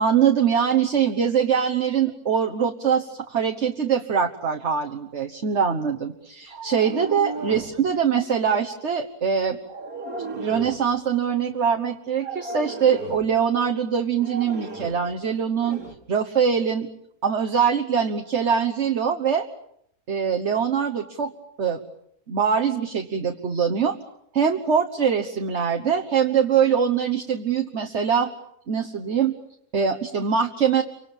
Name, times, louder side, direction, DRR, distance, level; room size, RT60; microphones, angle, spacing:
voice 1, 0.0-9.6 10.3-15.8 16.1-16.9 17.2-19.5 20.1-21.3 21.6-21.8 22.3-24.0 24.3-28.3 28.7-29.3 29.7-30.8, right 7 dB, 50° right, 3 dB, 1.6 m, -23 dB
sound 1, 6.5-7.8 9.6-10.9 12.1-13.3 14.2-15.1 15.6-15.9, right 3 dB, 70° right, 3.0 m, -35 dB
30.0 x 25.5 x 7.3 m, 0.75 s
omnidirectional pair, 1.6 m